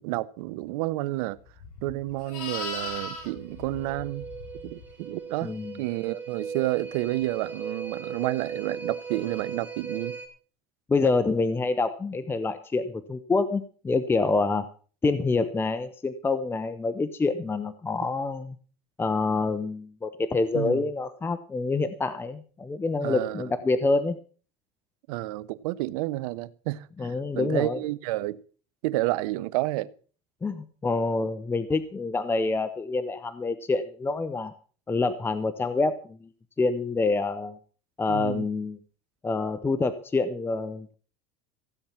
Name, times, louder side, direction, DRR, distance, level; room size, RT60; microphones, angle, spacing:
voice 1, 0.0-1.4 1.8-4.2 4.6-5.5 5.8-10.2 20.5-20.8 23.0-23.5 25.1-28.4 28.8-29.9 38.1-38.5, right 18 dB, 75° right, 0.9 m, -30 dB
Livestock farm animals working animals, 1.6-4.9 9.2-9.5, left 2 dB, 80° left, 7.4 m, -38 dB
sound 1, 2.7-10.3, right 6 dB, 10° right, 3.9 m, -38 dB
voice 2, 5.4-5.8 10.9-14.7 15.0-18.6 19.0-24.2 27.0-27.8 30.4-34.5 34.9-36.3 36.6-37.6 38.0-38.8 39.2-40.9, left 3 dB, 10° left, 0.8 m, -27 dB
16.0 x 8.7 x 5.8 m
supercardioid pair, 145°, 19 cm